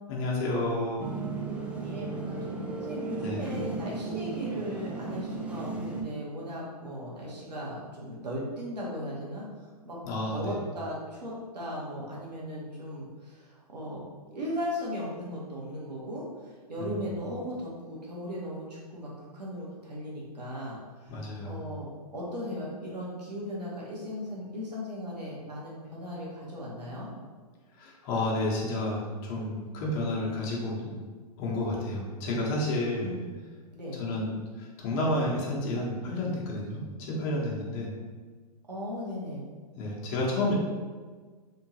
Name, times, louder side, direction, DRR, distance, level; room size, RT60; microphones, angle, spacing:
voice 1, 0.1-1.1 3.2-3.5 10.0-10.6 16.8-17.1 21.1-21.6 27.8-30.9 31.4-33.1 34.0-37.9 39.8-40.6, left 1 dB, 35° left, -4 dB, 1.1 m, -31 dB
sound 1, 1.0-6.0, right 4 dB, 5° right, 0.4 m, -35 dB
voice 2, 1.8-9.4 9.8-10.0 10.3-14.0 14.3-16.2 16.7-20.8 21.0-27.1 33.0-33.3 33.7-34.0 38.7-39.5, equal, 85° right, -5 dB, 1.4 m, -37 dB
3.7 x 3.6 x 2.9 m, 1.5 s
hypercardioid pair, 115°, 21 cm